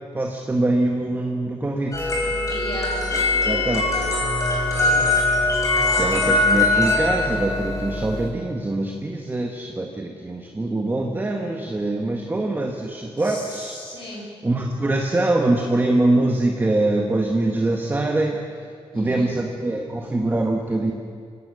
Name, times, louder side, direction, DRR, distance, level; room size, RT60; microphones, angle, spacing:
voice 1, 0.1-2.1 3.4-3.9 6.0-14.1 14.4-18.4 18.9-20.9, right 2 dB, 20° right, 1 dB, 1.6 m, -23 dB
sound 1, 1.9-8.3, left 2 dB, 30° left, 5.1 m, -21 dB
voice 2, 2.5-3.0 4.7-5.3 5.7-6.0 13.2-14.3 18.9-19.3, left 2 dB, 50° left, -3 dB, 5.8 m, -36 dB
24.5 x 17.5 x 6.6 m, 2.3 s
wide cardioid pair, 115°, 10 cm